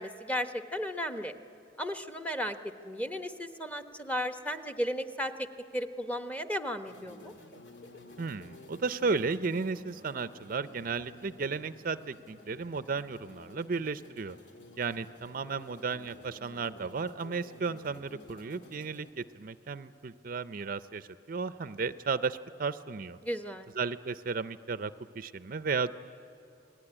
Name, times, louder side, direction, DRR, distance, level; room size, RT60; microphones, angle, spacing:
voice 1, 0.0-1.3 1.8-2.6 2.8-5.5 5.7-7.3 23.2-23.7, equal, 10° left, 8 dB, 1.0 m, -34 dB
sound 1, 6.9-19.1, left 2 dB, 80° left, 1.9 m, -53 dB
voice 2, 8.2-14.4 14.8-23.2 23.8-25.9, right 4 dB, 50° right, 14 dB, 0.5 m, -34 dB
28.5 x 19.5 x 9.9 m, 2.8 s
head